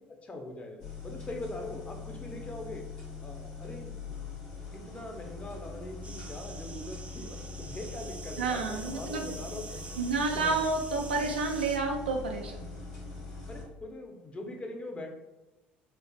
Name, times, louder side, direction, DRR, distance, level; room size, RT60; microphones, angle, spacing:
voice 1, 0.1-2.8 3.2-4.0 4.7-10.0 10.3-10.5 13.5-15.1, left 2 dB, 25° left, 2 dB, 0.7 m, -42 dB
sound 1, 0.8-13.6, left 4 dB, 70° left, 1.2 m, -42 dB
sound 2, 6.0-11.8, right 3 dB, 25° right, 0.5 m, -46 dB
voice 2, 8.4-9.4 10.0-12.7, right 4 dB, 85° right, 2 dB, 0.3 m, -30 dB
4.4 x 2.5 x 2.3 m, 1.0 s
hypercardioid pair, 60°, 5 cm